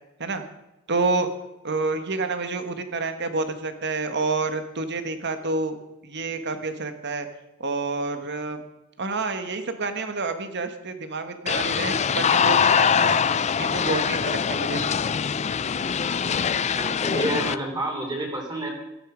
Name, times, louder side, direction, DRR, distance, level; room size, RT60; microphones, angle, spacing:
voice 1, 0.9-1.3 1.6-5.8 6.0-7.3 7.6-8.6 9.0-13.2 13.5-14.8, right 3 dB, 55° right, 8 dB, 1.6 m, -28 dB
sound 1, 11.5-17.5, left 7 dB, 30° left, 0.4 m, -23 dB
voice 2, 16.7-18.7, right 1 dB, 20° right, 1 dB, 3.3 m, -29 dB
16.0 x 13.0 x 5.2 m, 0.94 s
head